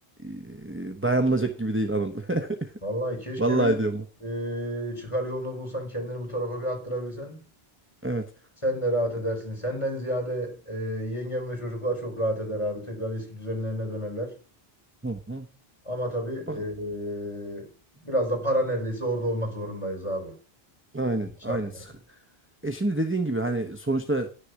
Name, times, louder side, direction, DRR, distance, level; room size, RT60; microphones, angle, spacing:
voice 1, 0.2-2.7 3.4-4.0 8.0-8.2 15.0-15.5 16.5-16.6 20.9-21.8 22.6-24.3, right 2 dB, 10° right, 1.1 m, -27 dB
voice 2, 2.8-3.8 4.2-7.4 8.6-14.4 15.8-17.7 18.0-20.4 21.5-21.8, equal, 30° left, 4.6 m, -30 dB
11.0 x 6.7 x 6.2 m
omnidirectional pair, 1.0 m